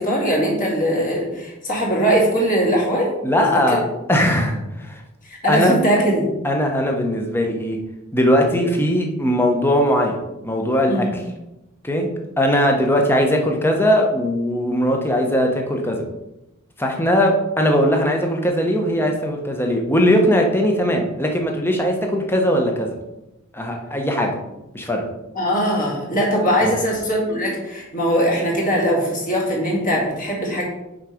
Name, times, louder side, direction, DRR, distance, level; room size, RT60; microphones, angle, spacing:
voice 1, 0.0-3.1 3.4-3.8 5.2-6.3 10.9-11.2 25.3-30.6, equal, 40° left, -3 dB, 2.2 m, -20 dB
voice 2, 3.2-3.8 4.1-5.0 5.5-5.7 6.4-7.8 8.1-10.2 10.4-11.2 11.8-12.1 12.4-16.0 16.8-22.9 23.5-24.3 24.7-25.0 26.6-26.8, equal, 10° left, 2 dB, 1.0 m, -19 dB
6.5 x 4.5 x 5.1 m, 0.95 s
head